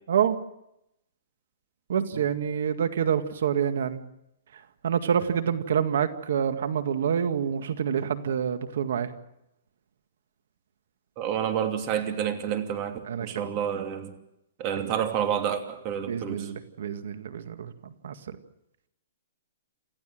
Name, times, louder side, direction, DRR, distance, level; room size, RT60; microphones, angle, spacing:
voice 1, 1.9-4.0 4.8-9.1 13.1-13.5 14.8-14.9 16.1-17.7 18.0-18.4, right 8 dB, 70° right, 10 dB, 1.9 m, -27 dB
voice 2, 11.2-14.1 14.6-16.5, right 9 dB, 30° right, 6 dB, 2.7 m, -29 dB
28.5 x 14.5 x 7.8 m, 0.83 s
hypercardioid pair, 155°, 0 cm